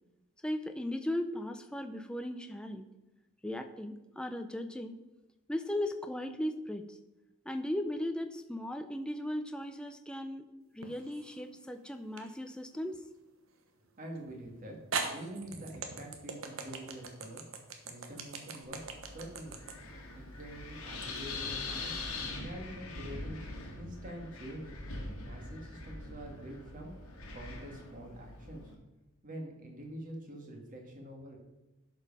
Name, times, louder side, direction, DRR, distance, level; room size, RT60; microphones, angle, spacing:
voice 1, 0.4-2.9 3.4-5.0 5.5-7.0 7.4-10.5 10.7-13.0, left 1 dB, 5° left, 7 dB, 0.5 m, -37 dB
sound 1, 10.8-11.4 12.2-12.3 14.2-14.3 14.9-21.1, right 4 dB, 65° right, 1.2 m, -40 dB
voice 2, 14.0-14.8 15.1-17.4 17.8-19.6 20.1-21.9 22.4-23.4 23.8-24.7 25.2-26.9 27.3-28.7 29.2-31.4, right 1 dB, 40° right, 1 dB, 1.9 m, -46 dB
Wind, 18.6-28.7, left 3 dB, 80° left, 1.7 m, -43 dB
11.5 x 5.4 x 5.4 m, 1.0 s
head